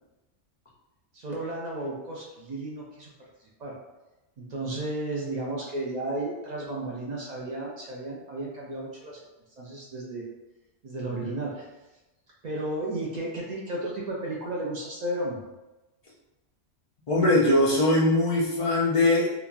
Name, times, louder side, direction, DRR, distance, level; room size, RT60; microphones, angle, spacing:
voice 1, 1.1-3.1 3.6-3.8 4.4-9.2 9.6-10.2 10.8-11.7 12.4-15.4, right 1 dB, 60° right, -3 dB, 0.4 m, -33 dB
voice 2, 17.1-19.3, left 1 dB, 50° left, -5 dB, 0.4 m, -21 dB
3.0 x 2.2 x 2.4 m, 1.0 s
omnidirectional pair, 1.2 m